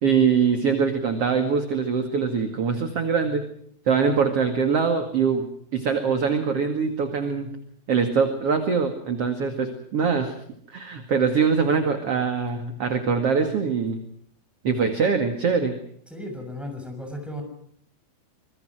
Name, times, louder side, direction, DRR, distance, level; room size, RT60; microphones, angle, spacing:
voice 1, 0.0-3.4 3.9-7.5 7.9-10.3 10.7-14.0 14.6-15.8, right 6 dB, 45° right, 6 dB, 2.7 m, -23 dB
voice 2, 16.1-17.4, left 1 dB, ahead, 4 dB, 6.5 m, -35 dB
26.5 x 23.0 x 6.3 m, 0.63 s
omnidirectional pair, 4.2 m